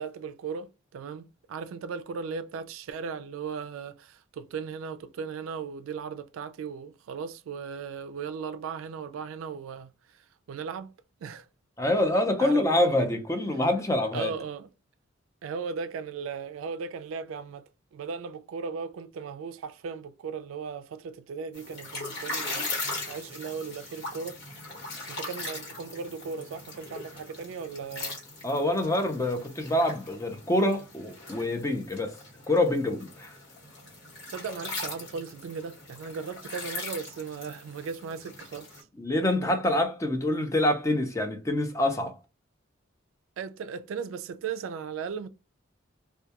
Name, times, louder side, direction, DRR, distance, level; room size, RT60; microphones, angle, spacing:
voice 1, 0.0-10.9 11.2-11.5 12.4-13.1 14.1-14.7 15.4-22.8 23.1-24.4 25.1-28.2 34.3-38.8 43.4-45.3, right 5 dB, 80° right, 0.3 m, -37 dB
voice 2, 11.8-14.3 28.4-32.1 32.5-33.3 39.0-42.1, left 1 dB, 15° left, 0.4 m, -26 dB
sound 1, 21.5-38.8, left 2 dB, 55° left, 1.2 m, -40 dB
2.2 x 2.2 x 2.8 m
head